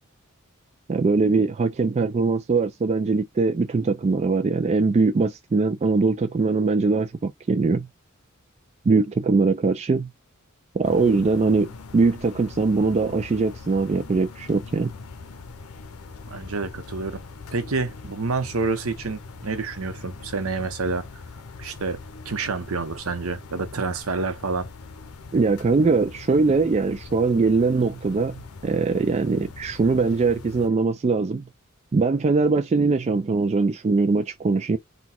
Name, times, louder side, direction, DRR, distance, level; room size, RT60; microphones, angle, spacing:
voice 1, 0.9-7.9 8.9-10.1 10.7-14.9 25.3-31.4 31.9-34.8, right 4 dB, 30° right, 0.3 m, -21 dB
sound 1, 10.8-30.7, left 4 dB, 85° left, 0.7 m, -42 dB
voice 2, 16.3-17.2 17.5-21.0 21.6-22.0 22.3-24.7, right 4 dB, 75° right, 0.8 m, -28 dB
4.0 x 2.3 x 4.2 m
head